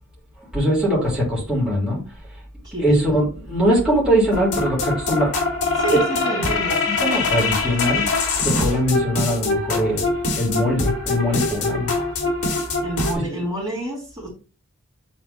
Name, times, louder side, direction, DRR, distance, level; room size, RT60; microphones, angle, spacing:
voice 1, 0.5-2.0 2.8-5.3 5.9-6.0 6.4-6.5 7.0-8.1 8.4-10.1 10.3-11.9 13.3-13.4, equal, 5° right, -6 dB, 2.9 m, -21 dB
voice 2, 2.6-3.3 5.7-6.8 12.8-14.3, right 1 dB, 20° right, -7 dB, 2.7 m, -29 dB
sound 1, 4.3-13.1, left 3 dB, 70° left, 2.1 m, -23 dB
8.6 x 4.1 x 3.0 m, 0.35 s
head